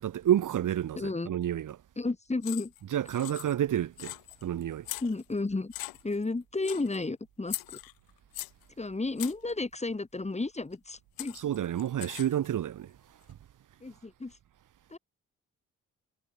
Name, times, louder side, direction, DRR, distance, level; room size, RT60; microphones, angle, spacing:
voice 1, 0.0-1.8 2.9-4.1 4.4-4.9 11.3-12.9 13.3-13.4, right 11 dB, 60° right, 1.1 m, -29 dB
voice 2, 1.0-1.3 2.0-2.7 5.0-5.7 6.0-7.8 8.8-11.4 13.8-14.3 14.9-15.0, left 3 dB, 20° left, 1.5 m, -32 dB
sound 1, 2.4-2.8 3.1-3.7 4.0-4.4 4.8-5.4 5.7-6.2 6.6-7.0 7.5-8.6 9.2-9.5 10.7-10.8 11.2-12.5, left 21 dB, 90° left, 2.2 m, -40 dB
supercardioid pair, 45°, 34 cm